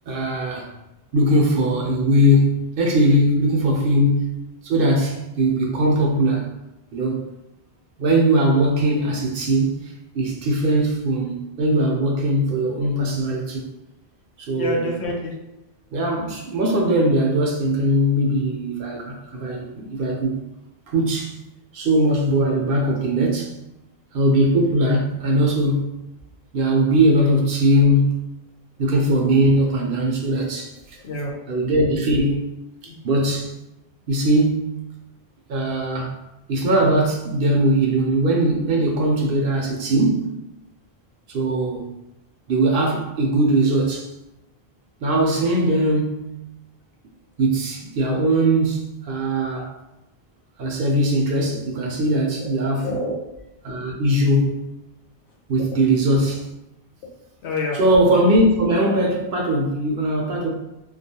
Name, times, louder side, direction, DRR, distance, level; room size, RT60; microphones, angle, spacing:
voice 1, 0.1-0.7 1.1-6.5 6.9-7.3 8.0-9.8 10.1-13.6 14.4-14.9 15.9-20.4 20.9-21.3 21.7-23.5 24.1-26.0 26.5-28.3 28.8-31.0 31.5-32.7 33.0-33.5 34.1-34.8 35.5-36.1 36.5-40.4 41.3-41.9 42.5-44.1 45.0-46.4 47.4-49.7 50.6-52.9 53.6-54.7 55.5-56.5 57.7-60.5, right 1 dB, 65° right, 0.7 m, -20 dB
voice 2, 14.5-15.3 31.0-31.3 32.9-33.0 49.5-49.7 52.4-52.5 52.8-53.2 57.4-57.8, left 1 dB, 80° left, 0.9 m, -27 dB
2.3 x 2.3 x 2.7 m
omnidirectional pair, 1.1 m